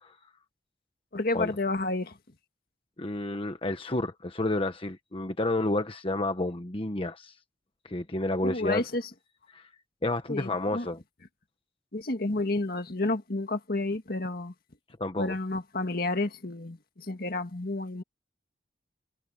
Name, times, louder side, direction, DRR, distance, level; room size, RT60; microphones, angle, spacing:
voice 1, 1.1-2.2 8.4-9.0 10.3-10.9 11.9-14.5 15.2-18.0, left 2 dB, 55° left, 1.9 m, -30 dB
voice 2, 3.0-7.4 7.8-8.8 9.5-9.7 10.0-11.0 15.0-15.4, left 2 dB, 30° left, 1.2 m, -30 dB
head